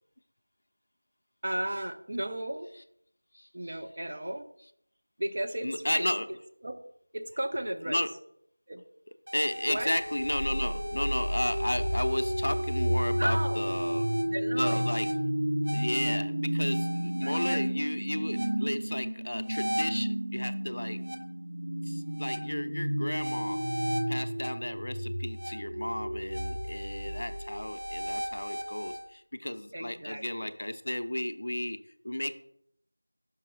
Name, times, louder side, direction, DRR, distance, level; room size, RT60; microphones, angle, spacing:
voice 1, 1.4-2.7 3.5-4.5 5.2-6.1 6.6-6.8 7.1-8.0 8.7-8.8 9.7-9.9 13.2-13.6 14.2-15.0 17.2-17.6 29.7-30.5, right 1 dB, 35° right, 5 dB, 0.6 m, -34 dB
voice 2, 3.3-3.7 5.6-6.3 7.9-8.1 9.3-14.1 14.5-15.1 15.7-21.0 21.8-23.6 24.1-31.8 32.0-32.4, left 1 dB, 50° left, 9 dB, 0.5 m, -33 dB
sound 1, 9.3-29.0, equal, 70° right, 1.1 m, -32 dB
5.9 x 5.3 x 4.7 m, 0.71 s
figure-of-eight pair, 175°, 0 cm